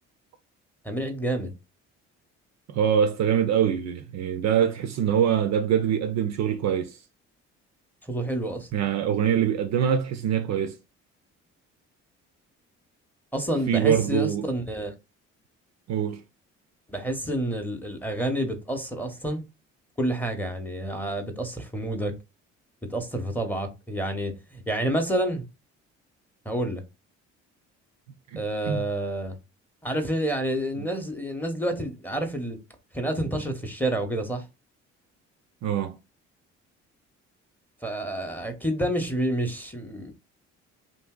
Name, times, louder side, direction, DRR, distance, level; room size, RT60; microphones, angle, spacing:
voice 1, 0.8-1.5 8.0-8.7 13.3-14.9 16.9-19.4 20.0-22.2 22.9-25.4 26.5-26.8 28.4-29.4 29.8-32.6 32.9-34.5 37.8-40.1, right 1 dB, 5° left, 0.7 m, -29 dB
voice 2, 2.7-7.0 8.7-10.8 13.7-14.4 15.9-16.2 28.3-28.8 35.6-35.9, right 8 dB, 50° right, 0.4 m, -24 dB
2.8 x 2.6 x 2.2 m
hypercardioid pair, 55°, 36 cm